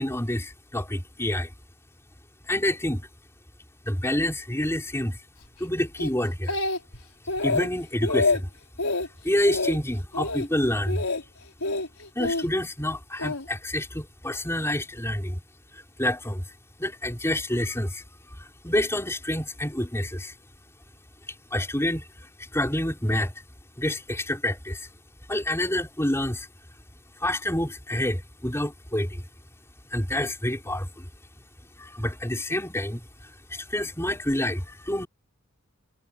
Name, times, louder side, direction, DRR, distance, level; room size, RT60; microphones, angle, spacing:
voice 1, 0.0-1.5 2.5-3.1 3.9-5.2 5.6-6.6 7.4-8.5 9.2-11.0 12.1-15.4 15.7-16.4 16.8-18.0 18.4-20.3 21.5-22.0 22.4-23.3 23.8-24.9 25.3-26.5 27.2-29.2 29.9-31.0 31.8-33.0 33.5-35.1, left 1 dB, 10° left, 4.9 m, -28 dB
Speech, 6.0-7.0 7.3-7.7 8.0-8.4 8.8-9.1 9.5-9.8 10.1-10.5 10.9-11.2 11.6-12.4 13.2-13.4, left 3 dB, 75° left, 5.0 m, -26 dB
head